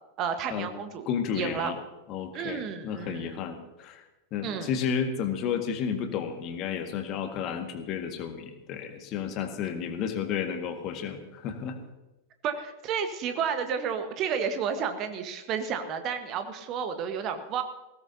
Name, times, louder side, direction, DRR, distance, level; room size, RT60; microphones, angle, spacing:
voice 1, 0.2-1.1 1.3-1.7 2.3-3.4 4.4-4.7 12.4-17.6, right 7 dB, 35° right, 7 dB, 1.4 m, -31 dB
voice 2, 1.1-1.8 2.1-11.8, left 7 dB, 35° left, 6 dB, 1.8 m, -32 dB
20.0 x 16.5 x 2.8 m, 1.0 s
figure-of-eight pair, 90°, 0 cm